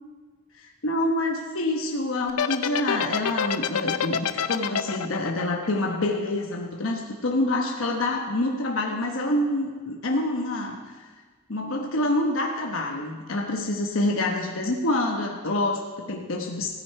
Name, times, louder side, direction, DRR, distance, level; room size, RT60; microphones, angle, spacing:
voice 1, 0.6-11.0 11.5-16.8, left 1 dB, 65° left, 0 dB, 1.1 m, -27 dB
sound 1, 2.3-6.6, left 7 dB, 90° left, 0.6 m, -26 dB
16.5 x 9.0 x 4.7 m, 1.4 s
head